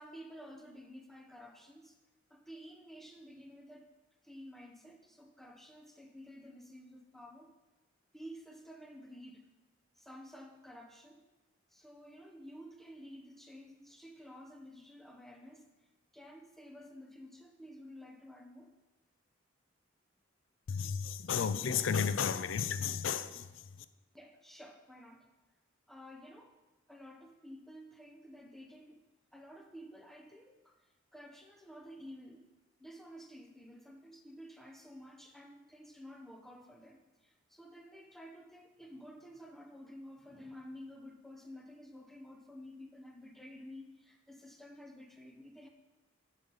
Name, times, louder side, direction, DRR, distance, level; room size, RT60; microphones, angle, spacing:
voice 1, 0.0-2.0 2.3-3.9 4.2-7.5 8.1-9.5 10.0-11.2 11.7-15.7 16.1-18.7 24.1-25.3 25.9-26.6 26.9-29.0 29.3-32.5 32.8-45.7, equal, ahead, 3 dB, 0.6 m, -52 dB
voice 2, 20.7-23.8, left 7 dB, 75° left, 13 dB, 0.4 m, -33 dB
11.5 x 5.4 x 3.9 m, 1.1 s
head